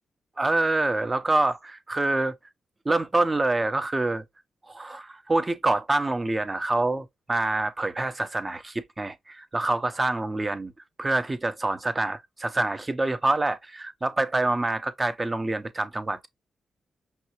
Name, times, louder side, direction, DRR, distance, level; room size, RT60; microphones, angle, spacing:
voice 1, 0.4-2.3 2.8-4.2 4.7-10.7 11.0-16.3, right 2 dB, 25° right, 0.8 m, -26 dB
5.3 x 2.3 x 3.0 m
supercardioid pair, 50°, 0 cm